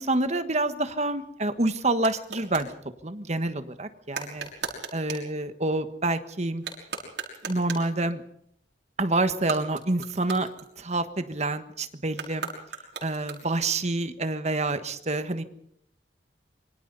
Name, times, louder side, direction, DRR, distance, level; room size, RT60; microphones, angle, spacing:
voice 1, 0.0-2.7 3.0-4.5 4.9-6.6 7.4-8.2 9.0-10.5 10.8-12.5 13.0-15.4, right 2 dB, 40° right, 10 dB, 1.5 m, -27 dB
sound 1, 1.1-2.7 4.1-5.3 6.5-8.0 9.3-11.1 12.1-13.7, right 5 dB, 85° right, 6.0 m, -38 dB
26.5 x 24.0 x 4.1 m, 0.72 s
head